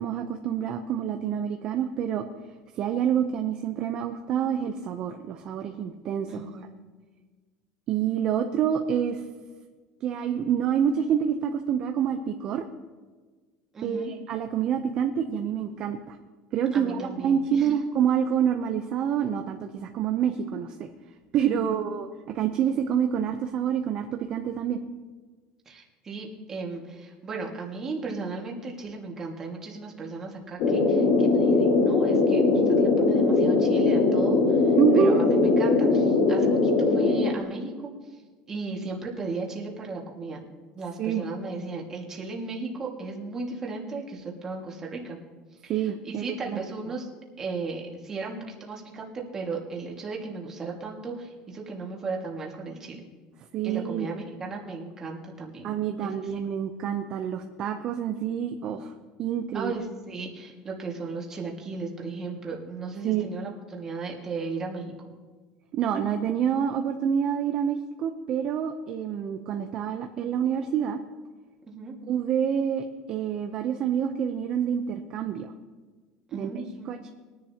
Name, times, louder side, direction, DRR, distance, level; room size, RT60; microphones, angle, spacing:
voice 1, 0.0-2.2 2.8-6.5 7.9-9.2 10.0-12.6 13.8-16.2 16.5-20.9 21.3-24.8 34.8-35.2 41.0-41.2 45.7-46.6 53.5-54.1 55.6-58.9 59.2-59.7 63.0-63.3 65.7-71.0 72.1-75.5 76.3-77.1, right 8 dB, 35° right, 6 dB, 0.6 m, -27 dB
voice 2, 6.3-6.8 13.7-14.1 16.7-17.8 21.5-21.8 25.7-38.2 38.5-40.4 40.7-45.2 45.6-47.1 47.4-53.0 53.6-55.7 56.0-56.2 59.5-64.9 71.7-72.0 76.3-76.9, right 3 dB, 20° right, -1 dB, 1.8 m, -36 dB
sound 1, 30.6-37.3, left 3 dB, 55° left, 1.7 m, -21 dB
21.5 x 10.5 x 2.8 m, 1.4 s
cardioid pair, 170°, 3 cm